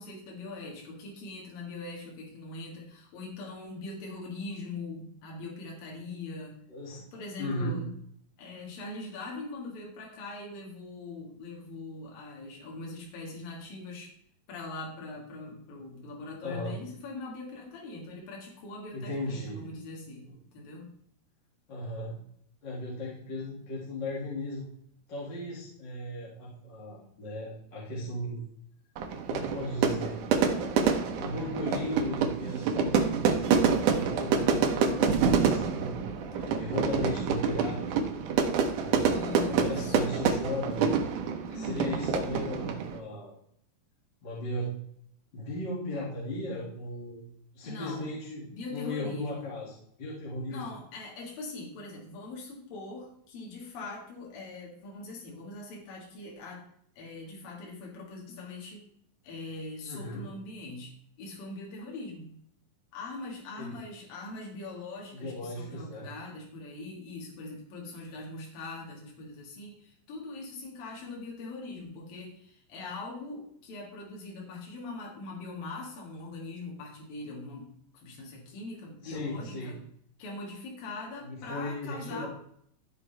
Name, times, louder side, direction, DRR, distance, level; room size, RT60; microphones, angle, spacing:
voice 1, 0.0-6.6 7.1-7.8 8.4-14.1 14.5-20.3 20.5-20.9 39.0-40.2 41.5-42.2 47.6-48.1 48.5-49.5 50.5-56.6 57.0-58.8 59.2-62.3 62.9-79.8 80.2-82.3, left 3 dB, 75° left, -2 dB, 3.6 m, -42 dB
voice 2, 6.7-7.1 7.4-7.8 16.4-16.8 18.9-19.6 20.3-20.4 21.7-22.1 22.6-24.7 25.1-28.4 29.3-30.2 31.1-38.0 38.8-40.9 41.5-43.3 44.2-44.7 45.3-47.2 47.5-49.7 50.0-50.6 59.9-60.3 63.6-63.7 65.1-66.1 79.0-79.7 81.2-82.3, left 1 dB, 35° left, -7 dB, 2.5 m, -36 dB
Fire / Fireworks, 29.0-43.0, right 6 dB, 70° right, 2.3 m, -27 dB
14.0 x 5.8 x 3.4 m, 0.68 s
omnidirectional pair, 4.1 m